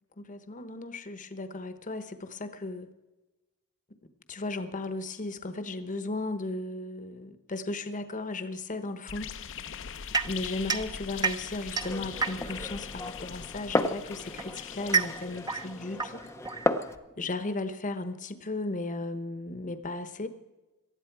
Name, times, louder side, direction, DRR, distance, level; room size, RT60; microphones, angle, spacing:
voice 1, 0.2-2.9 4.3-9.3 10.2-16.3 17.2-20.3, left 2 dB, 35° left, 10 dB, 1.0 m, -35 dB
sound 1, 9.1-16.1, left 7 dB, 60° left, 0.7 m, -42 dB
sound 2, 10.1-12.7 13.8-17.1, right 5 dB, 20° right, 0.8 m, -32 dB
Glass, 11.8-16.9, left 2 dB, 10° left, 0.7 m, -34 dB
19.0 x 13.0 x 4.7 m, 1.1 s
head